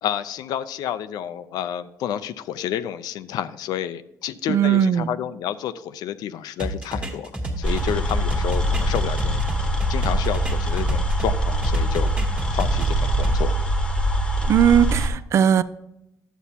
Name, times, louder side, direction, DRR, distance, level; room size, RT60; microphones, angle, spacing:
voice 1, 0.0-7.3 7.6-12.1 12.5-13.6, left 10 dB, 75° left, 11 dB, 0.5 m, -30 dB
voice 2, 4.5-5.1 14.5-15.6, right 9 dB, 45° right, 15 dB, 0.3 m, -18 dB
sound 1, 6.6-11.3 11.6-13.4, right 1 dB, 15° right, 1.4 m, -30 dB
sound 2, 7.6-15.1, right 1 dB, 10° left, 1.1 m, -23 dB
11.0 x 8.0 x 2.8 m, 0.84 s
cardioid pair, 155°, 7 cm